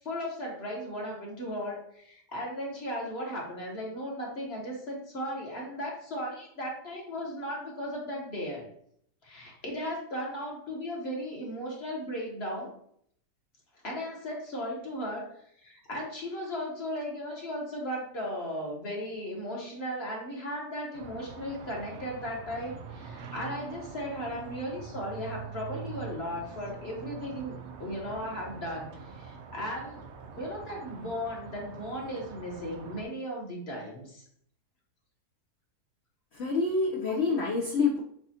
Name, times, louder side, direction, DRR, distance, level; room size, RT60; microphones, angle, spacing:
voice 1, 0.0-8.7 9.2-12.7 13.8-15.3 15.6-30.0 30.4-34.2, equal, 45° left, -2 dB, 1.2 m, -36 dB
sound 1, 20.9-33.1, right 6 dB, 75° right, 0.6 m, -44 dB
voice 2, 36.3-38.0, left 4 dB, 75° left, 1 dB, 0.6 m, -27 dB
7.2 x 2.4 x 2.8 m, 0.66 s
omnidirectional pair, 1.8 m